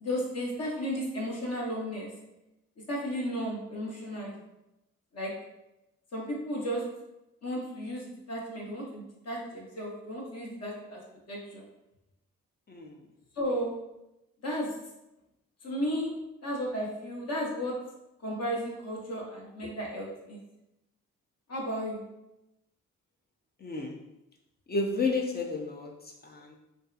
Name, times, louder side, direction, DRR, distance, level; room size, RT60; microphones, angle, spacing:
voice 1, 0.0-2.1 2.9-4.4 5.1-5.3 6.1-6.8 7.4-11.0 11.3-11.7 13.4-13.7 14.4-14.7 15.6-16.1 16.4-17.7 18.2-20.4 21.5-22.0, equal, 50° left, -3 dB, 0.9 m, -34 dB
voice 2, 23.6-24.0 24.7-25.9 26.2-26.6, left 3 dB, 30° left, 1 dB, 0.4 m, -31 dB
2.6 x 2.4 x 2.3 m, 0.91 s
supercardioid pair, 50°, 34 cm